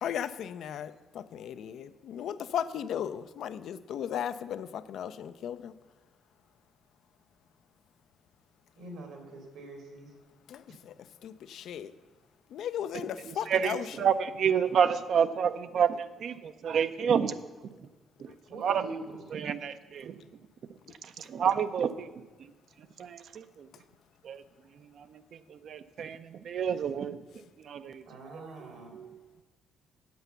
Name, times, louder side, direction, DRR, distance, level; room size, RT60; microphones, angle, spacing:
voice 1, 0.0-5.7 10.5-10.9 11.2-11.9 12.5-13.9, left 9 dB, 75° left, 13 dB, 0.4 m, -36 dB
voice 2, 8.8-10.1 13.4-13.5 18.5-19.2 28.1-29.0, right 2 dB, 85° right, 3 dB, 2.6 m, -44 dB
voice 3, 13.2-17.4 17.8-17.9 18.2-18.3 18.6-18.9 19.3-20.2 21.0-22.1 22.4-22.5 23.0-23.7 24.2-24.4 25.0-27.2 27.6-28.0 28.3-29.2, right 7 dB, 65° right, 11 dB, 0.5 m, -29 dB
8.0 x 7.8 x 6.8 m, 1.2 s
cardioid pair, 90°, 0 cm